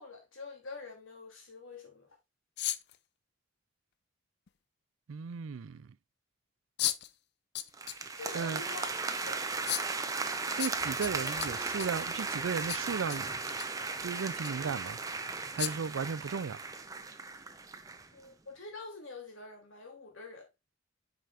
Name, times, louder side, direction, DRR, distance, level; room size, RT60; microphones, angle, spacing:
voice 1, 0.0-2.1 8.2-8.9 9.2-9.5 18.1-20.5, left 3 dB, 85° left, 3.0 m, -46 dB
sound 1, 2.6-3.0 4.5-4.6 6.8-7.1 7.5-8.0 8.4-8.5 9.7-9.9 10.6-12.1 12.7-13.2 13.5-13.7 14.4-14.5 15.6-15.9, left 13 dB, 55° left, 0.4 m, -34 dB
voice 2, 5.1-5.9 8.3-8.6 10.6-13.3 14.0-15.0 15.5-16.6, right 6 dB, 85° right, 0.4 m, -35 dB
sound 2, 7.7-18.1, right 4 dB, 15° right, 0.6 m, -36 dB
9.2 x 5.0 x 2.5 m
head